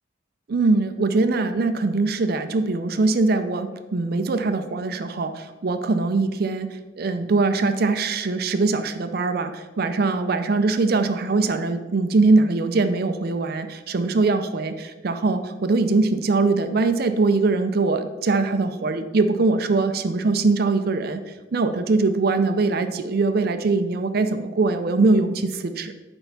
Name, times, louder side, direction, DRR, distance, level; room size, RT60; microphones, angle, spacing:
voice 1, 0.5-25.9, right 3 dB, 50° right, 9 dB, 0.4 m, -22 dB
8.0 x 4.4 x 5.6 m, 1.2 s
head